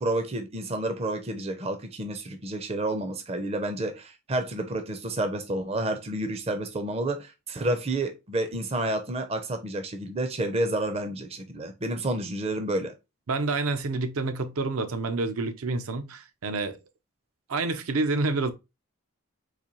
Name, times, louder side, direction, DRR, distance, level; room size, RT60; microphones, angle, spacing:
voice 1, 0.0-12.9, right 1 dB, 25° right, 0.5 m, -30 dB
voice 2, 13.3-16.8 17.5-18.5, right 3 dB, 75° right, 0.5 m, -28 dB
4.0 x 2.6 x 2.9 m
head